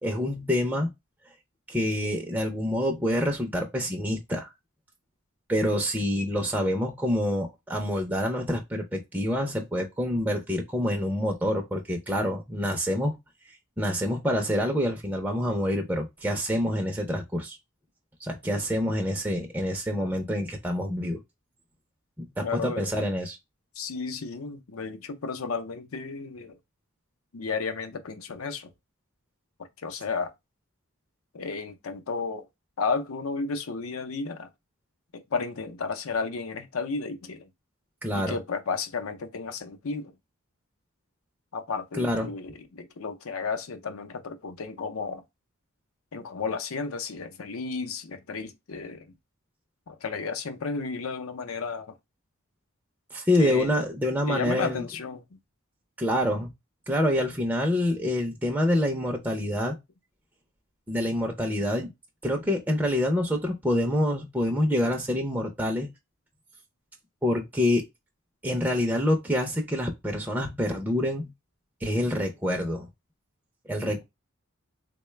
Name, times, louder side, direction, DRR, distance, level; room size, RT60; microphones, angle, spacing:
voice 1, 0.0-0.9 1.7-4.5 5.5-13.2 13.5-17.6 18.2-21.2 22.2-23.4 38.0-38.4 41.9-42.3 53.1-54.8 56.0-56.5 56.9-59.8 60.9-61.9 62.2-65.9 67.2-67.8 68.4-71.3 71.8-72.9 73.7-74.0, left 1 dB, 10° right, 0.5 m, -27 dB
voice 2, 22.4-22.9 23.8-26.6 27.3-28.7 29.8-30.3 31.3-32.5 32.8-34.5 35.1-37.5 38.1-40.1 41.5-45.2 46.1-49.1 49.9-51.9 53.4-53.7 54.3-55.4, left 4 dB, 80° left, 0.6 m, -33 dB
3.8 x 2.2 x 3.2 m
head